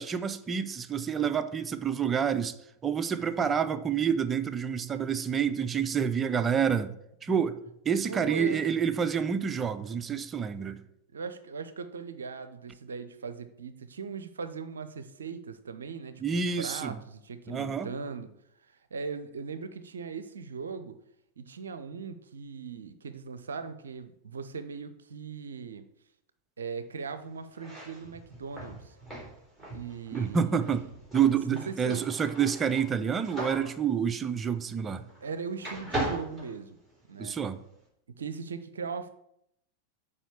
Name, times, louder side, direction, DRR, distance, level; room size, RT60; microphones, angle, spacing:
voice 1, 0.0-2.5 2.8-6.9 7.2-7.6 7.8-10.8 16.2-17.0 17.5-17.9 30.1-30.8 31.1-35.0 37.2-37.6, right 7 dB, 20° right, 0.6 m, -28 dB
voice 2, 8.1-8.6 11.1-18.3 18.6-21.0 21.4-25.9 26.6-28.9 29.7-30.8 31.5-32.0 35.2-36.8 37.1-37.4 38.2-39.1, right 5 dB, 70° right, 0.6 m, -39 dB
sound 1, 27.5-35.3 35.6-37.2, right 1 dB, ahead, 3.7 m, -39 dB
7.1 x 4.9 x 6.9 m
figure-of-eight pair, 90°, 0 cm